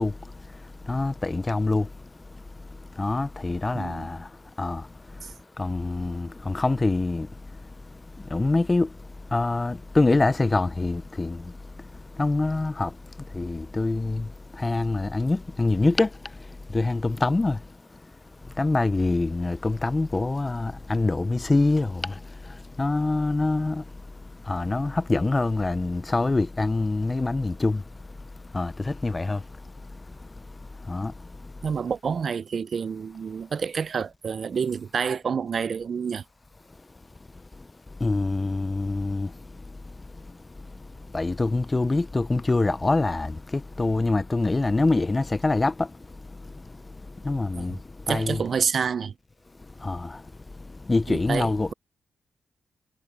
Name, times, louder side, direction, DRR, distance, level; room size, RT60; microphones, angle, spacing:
voice 1, 0.0-18.1 18.4-31.7 37.5-48.4 49.7-51.7, left 2 dB, 25° left, 0.4 m, -26 dB
voice 2, 3.7-4.1 31.6-36.2 47.5-47.8 48.1-49.1 51.1-51.7, right 6 dB, 60° right, 0.5 m, -28 dB
cardioid pair, 75°, 0 cm